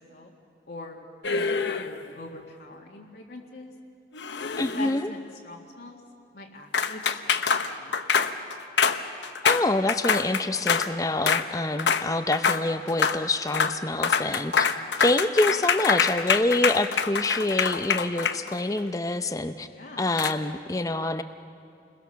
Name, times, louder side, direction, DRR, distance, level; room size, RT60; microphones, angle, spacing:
voice 1, 0.7-1.0 1.3-1.9 2.1-3.7 4.4-6.0 6.3-7.4 7.8-8.4 19.7-20.1, left 2 dB, 70° left, -2 dB, 1.9 m, -42 dB
sound 1, 1.2-2.1 4.1-5.1 6.7-10.9 11.3-11.5 11.8-12.1 12.3-12.6 12.9-13.2 13.5-13.8 14.0-18.8 20.2-20.3, left 6 dB, 85° left, 1.0 m, -25 dB
voice 2, 4.6-5.1 9.4-14.7 15.0-19.7 20.0-21.2, left 2 dB, 20° left, 9 dB, 0.6 m, -26 dB
29.5 x 21.5 x 6.9 m, 2.4 s
head